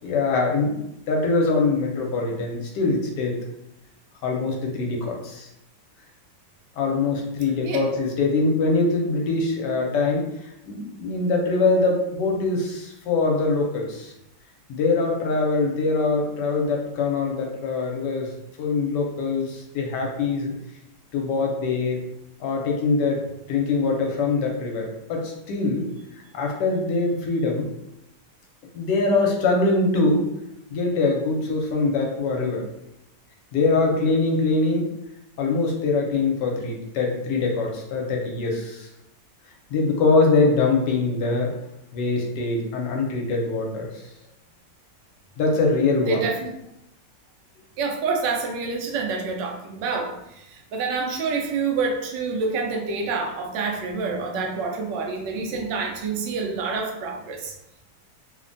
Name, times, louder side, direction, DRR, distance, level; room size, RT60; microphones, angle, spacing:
voice 1, 0.0-3.3 4.2-5.5 6.8-10.2 10.7-14.1 14.7-18.3 18.6-20.5 21.1-22.0 22.4-23.2 23.5-25.9 26.3-27.7 28.7-30.3 30.7-32.6 33.5-34.9 35.4-38.9 39.7-41.5 41.9-43.9 45.4-46.2 55.5-55.6, left 3 dB, 80° left, 0 dB, 1.2 m, -23 dB
voice 2, 46.1-46.5 47.8-57.5, right 4 dB, 85° right, 2 dB, 1.2 m, -27 dB
3.2 x 2.1 x 2.5 m, 0.83 s
omnidirectional pair, 1.9 m